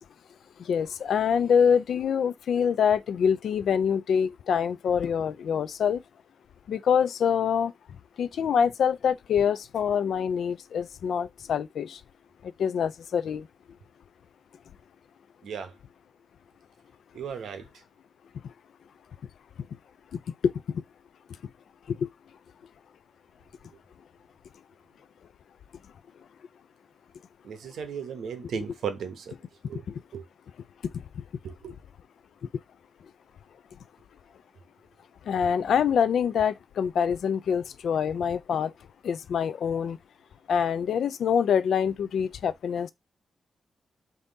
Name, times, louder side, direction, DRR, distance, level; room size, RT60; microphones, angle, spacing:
voice 1, 0.7-6.0 6.7-7.7 8.2-12.0 12.6-13.4 20.4-20.5 35.3-38.7 39.0-40.0 40.5-42.9, left 7 dB, 80° left, 0.3 m, -25 dB
voice 2, 15.4-15.7 17.1-17.7 27.4-29.3 29.7-29.8 30.1-30.2 31.4-31.7, right 7 dB, 90° right, 0.8 m, -35 dB
3.6 x 2.7 x 3.8 m
wide cardioid pair, 130°, 0 cm